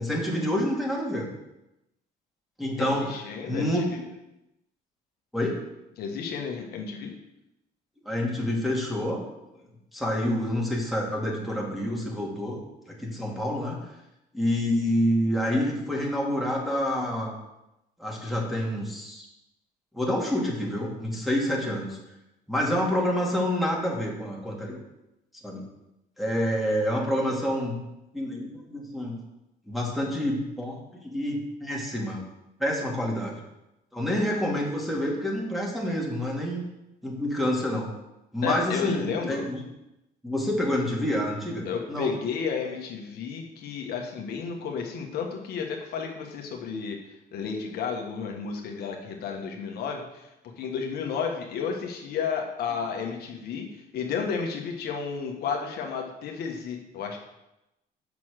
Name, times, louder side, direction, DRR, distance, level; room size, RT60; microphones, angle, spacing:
voice 1, 0.0-1.3 2.6-3.1 3.5-3.9 5.3-5.6 8.0-9.2 9.9-12.6 13.0-13.8 14.3-17.3 18.0-19.2 19.9-22.0 22.5-24.8 25.4-25.6 26.2-27.8 28.1-29.2 29.7-32.3 32.6-33.4 33.9-36.6 37.0-37.9 38.3-39.6 40.2-42.1, left 1 dB, ahead, -3 dB, 2.4 m, -28 dB
voice 2, 2.8-4.0 6.0-7.1 38.4-39.5 41.6-47.0 47.3-50.3 50.6-57.2, left 6 dB, 70° left, 2 dB, 1.4 m, -32 dB
6.9 x 6.1 x 6.5 m, 0.92 s
cardioid pair, 110°, 17 cm